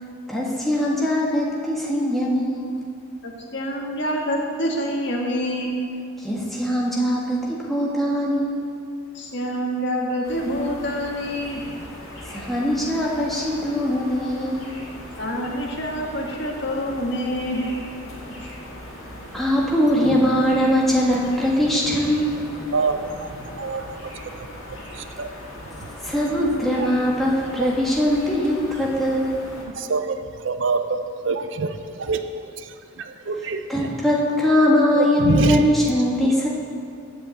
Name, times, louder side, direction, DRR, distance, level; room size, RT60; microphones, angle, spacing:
voice 1, 0.3-2.8 6.2-8.6 12.3-14.8 19.3-22.3 26.0-29.5 33.7-36.5, equal, ahead, -5 dB, 1.5 m, -21 dB
voice 2, 3.2-5.8 9.1-11.6 15.2-17.8 18.4-18.5, equal, 60° left, 0 dB, 1.5 m, -26 dB
sound 1, 10.2-29.7, left 1 dB, 90° left, 2.3 m, -39 dB
voice 3, 22.7-24.0 24.7-25.3 26.4-26.5 26.8-26.9 27.6-27.7 28.2-28.4 29.3-33.7 34.9-35.6 36.2-36.3, right 4 dB, 65° right, 8 dB, 0.5 m, -26 dB
7.9 x 6.7 x 7.7 m, 2.4 s
head